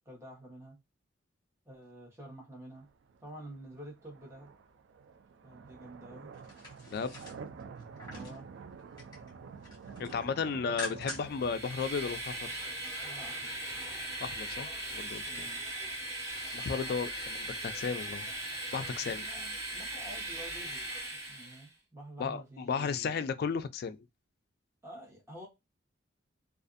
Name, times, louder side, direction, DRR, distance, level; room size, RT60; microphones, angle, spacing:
voice 1, 0.0-0.8 1.6-2.9 3.2-4.5 5.4-6.3 8.1-8.5 10.4-10.8 13.0-13.6 15.3-15.6 19.0-20.8 21.1-23.3 24.8-25.5, right 1 dB, 15° right, 1.0 m, -49 dB
sound 1, 2.7-16.7, right 5 dB, 65° right, 0.3 m, -50 dB
sound 2, 6.3-8.4 8.8-9.3 9.6-11.5 11.8-11.9, left 1 dB, 20° left, 1.1 m, -44 dB
voice 2, 10.0-12.4 14.2-15.5 16.5-18.3 18.7-19.3 22.2-24.0, left 5 dB, 55° left, 0.3 m, -34 dB
Train, 11.2-21.7, right 1 dB, 35° right, 1.6 m, -39 dB
2.5 x 2.4 x 2.5 m
head